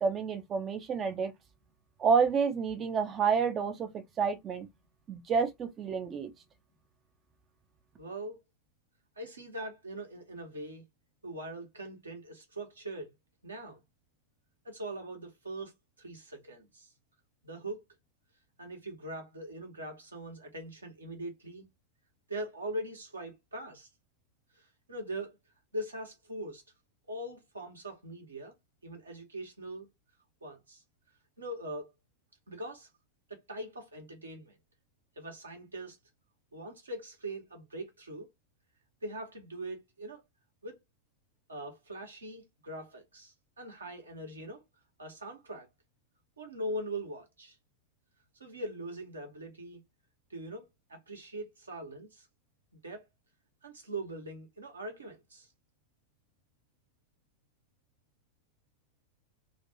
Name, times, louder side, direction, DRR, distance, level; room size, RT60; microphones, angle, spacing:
voice 1, 0.0-1.3 2.0-4.7 5.1-6.3, right 6 dB, 25° right, 0.4 m, -29 dB
voice 2, 8.0-8.4 9.2-10.8 11.2-13.1 13.4-13.8 14.6-15.7 16.0-16.9 17.4-17.8 18.6-21.7 22.3-23.9 24.5-25.3 25.7-26.6 27.1-28.5 28.8-29.9 30.4-30.8 31.4-31.9 32.5-32.9 33.3-34.6 35.2-36.0 36.5-38.3 39.0-40.2 40.6-40.8 41.5-44.6 45.0-45.7 46.4-47.6 48.4-49.8 50.3-52.3 52.8-53.0 53.6-55.5, right 1 dB, 75° right, 0.9 m, -41 dB
2.4 x 2.2 x 2.7 m
figure-of-eight pair, 90°, 0 cm